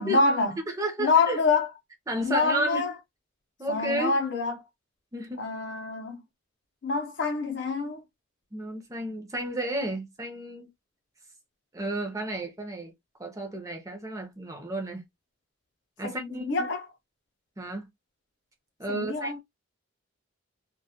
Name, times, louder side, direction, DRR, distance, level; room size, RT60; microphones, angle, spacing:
voice 1, 0.0-0.6 1.0-1.7 2.2-2.9 3.7-4.5 5.4-6.2 6.8-8.0 16.0-16.9 18.9-19.4, left 4 dB, 55° left, 0.5 m, -26 dB
voice 2, 0.7-1.4 2.1-2.9 3.6-4.2 5.1-5.5 8.5-10.7 11.7-12.9 13.2-15.0 16.0-16.7 17.6-17.9 18.8-19.4, right 1 dB, 15° right, 0.6 m, -32 dB
2.2 x 2.1 x 2.7 m
head